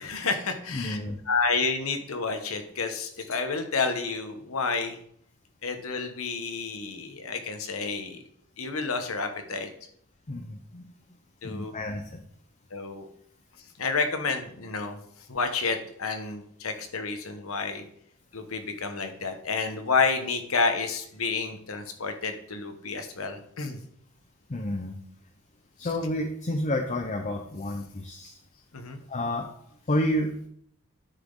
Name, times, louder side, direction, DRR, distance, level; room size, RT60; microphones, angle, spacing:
voice 1, 0.0-1.0 1.3-5.0 5.6-8.2 8.6-9.7 11.4-11.7 12.7-13.1 13.8-15.0 15.3-17.8 18.3-23.8 28.7-29.0, left 4 dB, 70° left, 6 dB, 1.1 m, -30 dB
voice 2, 0.7-1.2 10.3-10.9 11.4-12.2 24.5-25.0 25.8-28.4 29.1-29.5 29.9-30.3, left 1 dB, 35° left, 3 dB, 0.8 m, -30 dB
10.0 x 6.0 x 3.9 m, 0.67 s
head